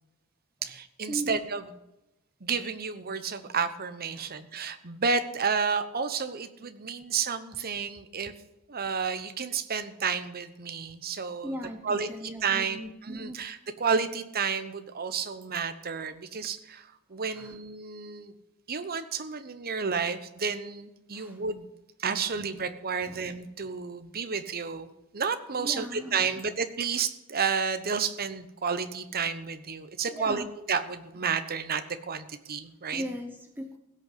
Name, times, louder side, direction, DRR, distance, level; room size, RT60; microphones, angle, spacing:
voice 1, 0.6-1.6 2.4-8.3 8.7-11.5 11.8-18.3 18.7-21.7 22.0-33.0, right 5 dB, 45° right, 10 dB, 1.0 m, -31 dB
voice 2, 11.4-13.4 17.3-17.6 21.1-21.4 22.4-22.5 23.0-23.2 25.6-26.4 30.1-30.5 32.9-33.8, equal, 10° right, 5 dB, 0.9 m, -39 dB
16.5 x 6.6 x 7.4 m, 0.94 s
head